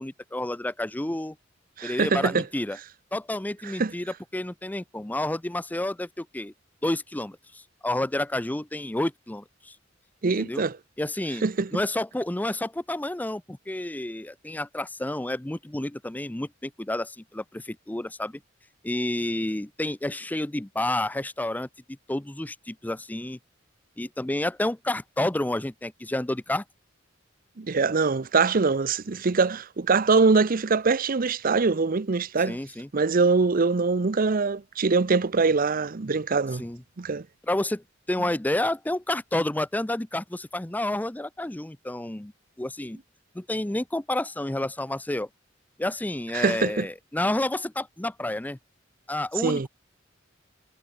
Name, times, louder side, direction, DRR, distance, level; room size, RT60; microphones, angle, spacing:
voice 1, 0.0-1.4 1.8-2.8 3.1-6.5 6.8-9.8 10.4-10.6 11.0-11.5 11.7-18.4 18.8-21.7 22.1-23.4 24.0-26.6 32.4-32.9 36.6-36.8 37.5-42.3 42.6-43.0 43.3-45.3 45.8-48.6 49.1-49.7, left 1 dB, 10° left, 0.5 m, -30 dB
voice 2, 1.8-2.4 3.8-3.9 10.2-10.8 11.4-11.7 27.6-32.6 32.9-36.6 37.0-37.3 38.2-38.3 46.3-46.9 49.4-49.7, right 4 dB, 45° right, 0.7 m, -23 dB
head